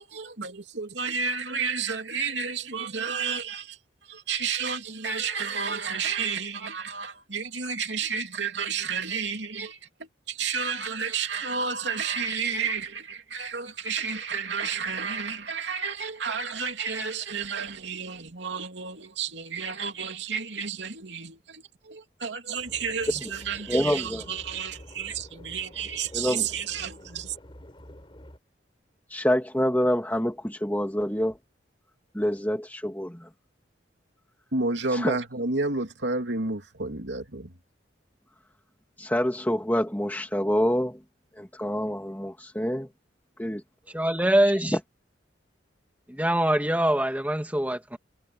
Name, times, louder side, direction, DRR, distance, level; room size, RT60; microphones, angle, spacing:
voice 1, 0.0-3.8 4.1-27.3 34.5-37.5, right 5 dB, 75° right, 2.9 m, -31 dB
sound 1, 22.6-28.4, equal, 25° left, 4.8 m, -47 dB
voice 2, 23.7-24.2 26.1-26.5 29.1-31.4 32.1-33.3 34.9-35.2 39.0-41.0 41.4-42.9 43.4-43.6 44.7-44.8, equal, 10° left, 2.1 m, -26 dB
voice 3, 43.9-44.7 46.1-48.0, right 1 dB, 10° right, 2.3 m, -23 dB
head